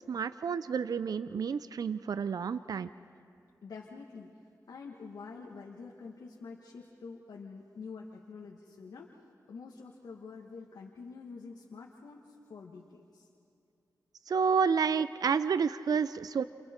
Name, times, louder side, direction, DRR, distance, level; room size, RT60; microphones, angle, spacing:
voice 1, 0.1-2.9 14.3-16.4, right 6 dB, 70° right, 14 dB, 0.5 m, -30 dB
voice 2, 3.6-4.3 4.7-9.1 9.5-13.3 14.6-14.8, left 4 dB, 85° left, -1 dB, 1.6 m, -47 dB
29.5 x 29.0 x 4.5 m, 2.6 s
cardioid pair, 60°, 7 cm